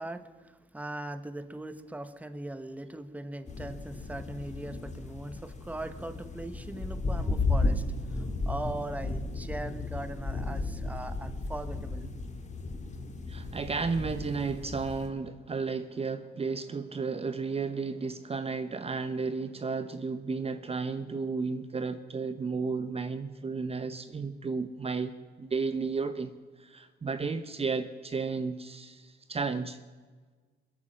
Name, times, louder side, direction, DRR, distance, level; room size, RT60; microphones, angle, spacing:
voice 1, 0.0-7.8 8.1-12.1, right 1 dB, 5° right, 10 dB, 1.0 m, -40 dB
sound 1, 3.5-15.1, left 2 dB, 35° left, 1.9 m, -34 dB
voice 2, 13.3-25.1 25.4-26.3 26.6-29.8, right 4 dB, 30° right, 10 dB, 0.8 m, -33 dB
21.5 x 8.5 x 7.6 m, 1.4 s
cardioid pair, 90°, 20 cm